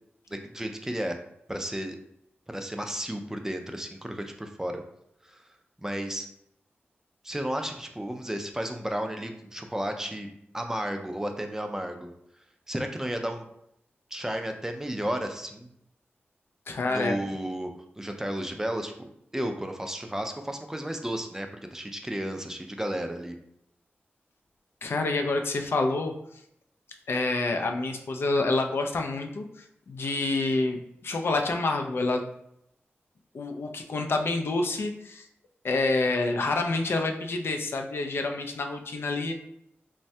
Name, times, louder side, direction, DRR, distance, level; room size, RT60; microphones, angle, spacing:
voice 1, 0.3-1.2 1.5-2.0 2.5-4.8 5.2-5.4 5.8-6.3 7.2-12.1 12.7-13.5 14.1-15.7 16.9-17.7 18.0-23.3, right 1 dB, 10° right, 5 dB, 0.3 m, -33 dB
voice 2, 16.7-17.2 24.8-26.1 27.1-32.2 33.3-35.3 35.6-39.3, left 3 dB, 65° left, 4 dB, 0.3 m, -28 dB
3.1 x 2.1 x 2.7 m, 0.76 s
wide cardioid pair, 85°, 4 cm